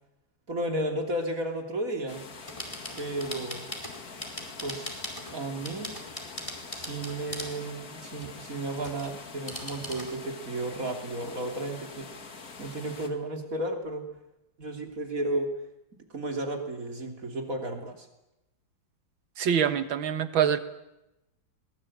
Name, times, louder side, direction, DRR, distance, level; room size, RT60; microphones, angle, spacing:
voice 1, 0.5-2.2 3.0-3.8 4.6-5.0 5.3-6.0 6.7-12.1 12.6-14.1 14.6-15.5 16.1-18.1, right 1 dB, 45° right, 4 dB, 3.4 m, -33 dB
sound 1, 2.1-13.1, left 4 dB, 50° left, 2.5 m, -45 dB
sound 2, 2.5-5.3 5.6-7.6 8.2-9.1 9.5-10.1, left 1 dB, 15° left, 4.6 m, -40 dB
voice 2, 19.4-20.6, right 8 dB, 85° right, 11 dB, 2.2 m, -25 dB
23.0 x 21.0 x 8.7 m, 0.91 s
omnidirectional pair, 2.1 m